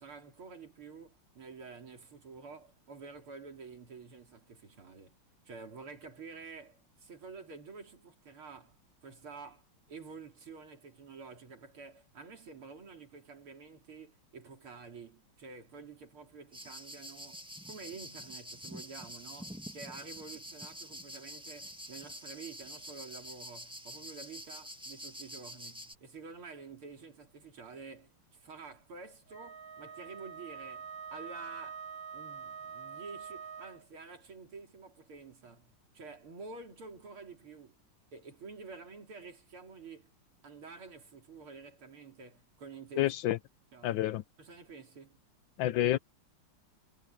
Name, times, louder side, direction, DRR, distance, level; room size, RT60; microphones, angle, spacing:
voice 1, 0.0-5.2 5.5-31.9 32.1-37.8 38.1-40.1 40.4-43.1 43.7-44.0 44.4-45.2, right 4 dB, 80° right, 4.2 m, -49 dB
sound 1, 16.5-26.0, equal, 5° right, 1.1 m, -47 dB
Wind instrument woodwind instrument, 29.3-33.8, right 6 dB, 25° right, 3.0 m, -45 dB
voice 2, 43.0-43.4 43.8-44.2 45.6-46.0, left 14 dB, 75° left, 1.2 m, -28 dB
omnidirectional pair, 2.3 m